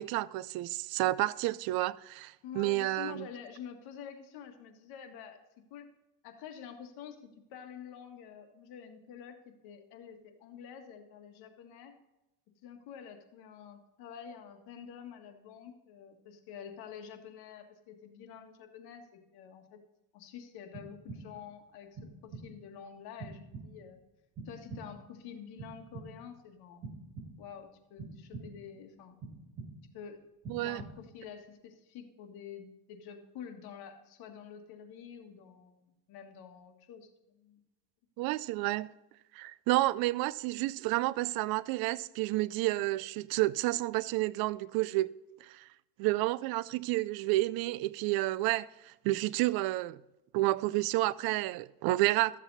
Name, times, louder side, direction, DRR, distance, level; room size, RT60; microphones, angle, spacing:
voice 1, 0.0-3.3 30.5-30.8 38.2-38.9 39.3-45.1 45.4-45.6 46.0-50.0 50.3-52.4, right 18 dB, 65° right, 0.5 m, -30 dB
voice 2, 2.4-5.4 5.7-5.9 6.2-9.4 9.6-12.0 12.6-19.8 20.1-24.0 24.5-26.8 27.4-29.2 29.9-30.2 30.6-37.6, left 7 dB, 70° left, 1.9 m, -48 dB
sound 1, 20.7-21.5 22.0-22.7 23.2-24.0 24.4-25.2 25.6-26.4 26.8-27.6 28.0-28.8 29.2-30.0 30.4-31.2, right 3 dB, 50° right, 4.0 m, -46 dB
14.0 x 7.4 x 4.1 m
cardioid pair, 120°, 39 cm